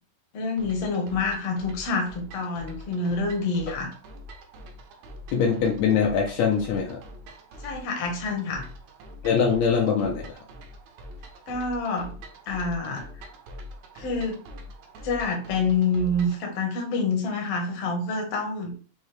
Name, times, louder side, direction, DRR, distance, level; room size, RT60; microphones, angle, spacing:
voice 1, 0.3-3.9 7.6-8.6 11.5-12.1 12.5-13.0 14.0-14.4 15.0-18.7, left 3 dB, 70° left, 1 dB, 1.5 m, -27 dB
sound 1, 0.6-16.4, equal, 75° right, 1.6 m, -44 dB
voice 2, 5.3-7.0 9.2-10.4, left 6 dB, 90° left, 1 dB, 1.5 m, -23 dB
6.1 x 2.7 x 3.2 m, 0.39 s
omnidirectional pair, 4.1 m